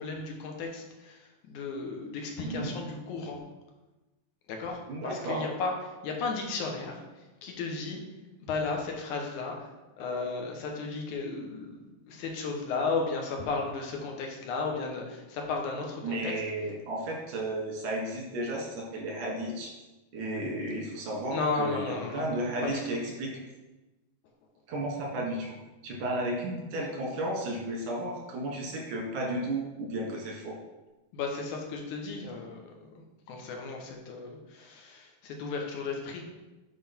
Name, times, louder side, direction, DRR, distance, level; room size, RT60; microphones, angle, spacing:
voice 1, 0.0-3.4 4.5-5.7 6.0-8.0 8.4-9.7 10.0-16.3 21.3-23.0 31.1-36.2, left 4 dB, 80° left, 1 dB, 2.5 m, -34 dB
voice 2, 2.4-2.8 4.9-5.4 16.0-19.7 20.1-23.4 24.7-25.5 25.8-30.6, right 1 dB, 85° right, -1 dB, 3.1 m, -33 dB
7.7 x 5.4 x 4.3 m, 1.1 s
omnidirectional pair, 3.5 m